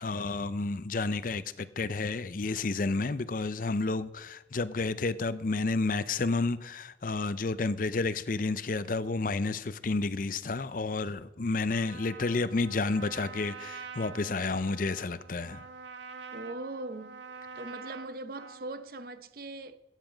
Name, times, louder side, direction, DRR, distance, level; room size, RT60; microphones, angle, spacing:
voice 1, 0.0-15.6, left 3 dB, 50° left, 0.6 m, -31 dB
Trumpet, 11.7-18.9, right 5 dB, 85° right, 1.3 m, -46 dB
voice 2, 16.3-17.2 17.5-19.8, right 2 dB, 50° right, 0.8 m, -40 dB
15.5 x 9.3 x 5.1 m
head